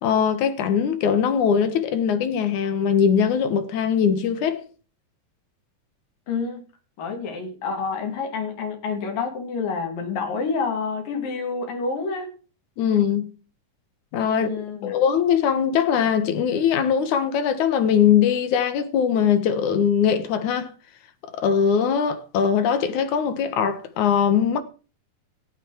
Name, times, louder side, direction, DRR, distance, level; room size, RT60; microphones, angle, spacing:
voice 1, 0.0-4.6 12.8-13.3 14.1-14.5 14.8-20.7 21.3-24.6, left 7 dB, 65° left, 2.7 m, -21 dB
voice 2, 6.3-6.6 7.0-12.3 14.3-15.0, left 5 dB, 90° left, 4.2 m, -28 dB
15.5 x 9.0 x 4.7 m
omnidirectional pair, 3.8 m